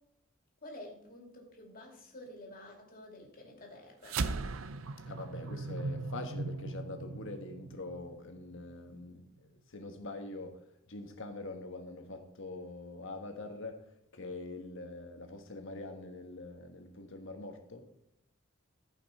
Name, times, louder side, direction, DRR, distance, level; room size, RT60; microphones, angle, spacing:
voice 1, 0.6-4.2, left 1 dB, 45° left, 2.6 m, -50 dB
sound 1, 4.0-8.7, right 3 dB, 75° right, 0.6 m, -38 dB
voice 2, 5.1-13.9 14.1-17.9, left 2 dB, 65° left, 1.5 m, -44 dB
14.5 x 5.7 x 4.3 m
head